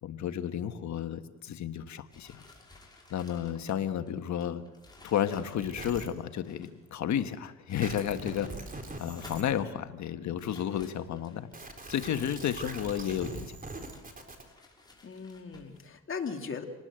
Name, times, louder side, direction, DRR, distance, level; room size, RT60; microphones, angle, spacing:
voice 1, 0.0-2.4 3.1-4.6 5.0-8.7 9.0-11.5 11.9-13.6, left 9 dB, 70° left, 9 dB, 1.5 m, -32 dB
sound 1, 2.1-6.9 7.5-8.6 9.0-9.7 10.4-11.6 12.2-13.5 13.9-15.9, left 2 dB, 15° left, 6.1 m, -56 dB
sound 2, 5.6-6.1 7.8-9.4 11.5-14.4, right 2 dB, 30° right, 4.0 m, -42 dB
voice 2, 15.0-16.6, left 5 dB, 45° left, 4 dB, 2.8 m, -38 dB
27.5 x 19.5 x 7.7 m, 1.1 s
cardioid pair, 90°, 30 cm